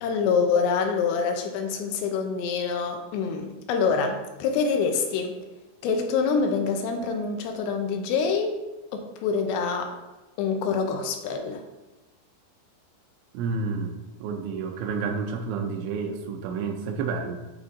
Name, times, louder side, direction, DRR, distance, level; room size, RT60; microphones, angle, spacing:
voice 1, 0.0-5.4 5.8-8.5 8.9-10.0 10.4-11.6, left 5 dB, 80° left, 4 dB, 2.7 m, -26 dB
voice 2, 13.3-17.4, right 5 dB, 90° right, 3 dB, 3.0 m, -30 dB
9.6 x 3.7 x 3.9 m, 1.1 s
omnidirectional pair, 5.3 m